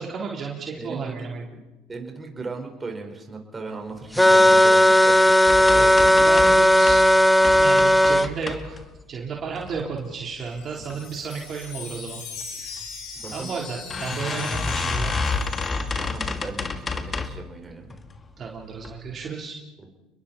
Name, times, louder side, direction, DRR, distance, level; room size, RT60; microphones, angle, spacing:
voice 1, 0.0-1.5 5.7-5.9 6.2-7.0 7.6-8.8 9.1-12.2 12.6-12.7 13.2-15.1 18.4-19.6, right 5 dB, 40° right, -1 dB, 3.7 m, -33 dB
voice 2, 0.8-1.5 1.9-6.4 10.7-11.0 13.1-13.5 15.9-18.0 19.8-19.9, right 3 dB, 20° right, 3 dB, 4.8 m, -37 dB
sound 1, 4.2-8.3, equal, 5° left, 1.1 m, -15 dB
sound 2, 5.5-7.1 7.4-9.0 9.5-10.1 10.6-11.0 11.2-11.3 11.6-11.7 12.8-12.9 13.3-13.4 13.9-17.5 17.9-18.3 18.8-18.9 19.3-19.4, left 4 dB, 30° left, 2.0 m, -30 dB
Wind chime, 10.1-16.3, left 5 dB, 75° left, 6.4 m, -40 dB
30.0 x 21.5 x 4.3 m, 1.0 s
hypercardioid pair, 85°, 0 cm